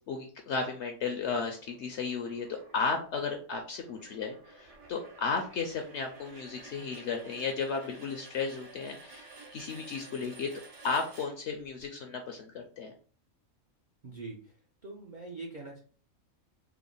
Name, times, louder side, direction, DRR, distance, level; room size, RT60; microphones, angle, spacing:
voice 1, 0.1-10.5 10.8-12.9, left 5 dB, 65° left, 3 dB, 0.7 m, -34 dB
sound 1, 1.3-11.8, right 3 dB, 70° right, 1.4 m, -52 dB
voice 2, 14.0-14.6 14.8-15.8, right 3 dB, 50° right, -1 dB, 0.6 m, -43 dB
3.4 x 2.0 x 3.8 m, 0.40 s
omnidirectional pair, 1.5 m